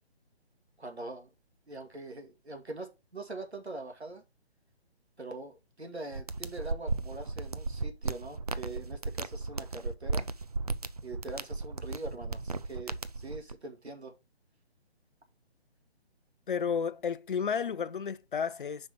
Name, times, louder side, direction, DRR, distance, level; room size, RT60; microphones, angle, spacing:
voice 1, 0.8-1.3 1.7-4.2 5.2-10.3 11.0-14.1, right 2 dB, 85° right, 2.0 m, -43 dB
sound 1, 6.1-13.5, right 3 dB, 40° right, 0.4 m, -35 dB
voice 2, 16.5-18.9, left 6 dB, 50° left, 0.5 m, -32 dB
5.3 x 4.7 x 5.0 m
figure-of-eight pair, 145°, 32 cm